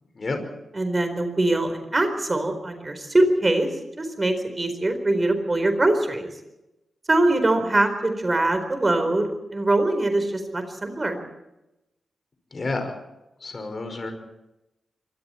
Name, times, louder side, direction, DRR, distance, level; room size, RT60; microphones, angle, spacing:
voice 1, 0.7-3.7 4.0-6.3 7.1-11.2, right 2 dB, 25° right, 8 dB, 4.2 m, -22 dB
voice 2, 12.5-12.9 13.4-14.1, left 3 dB, 35° left, 6 dB, 5.2 m, -29 dB
26.5 x 24.5 x 4.4 m, 0.93 s
wide cardioid pair, 130°, 0 cm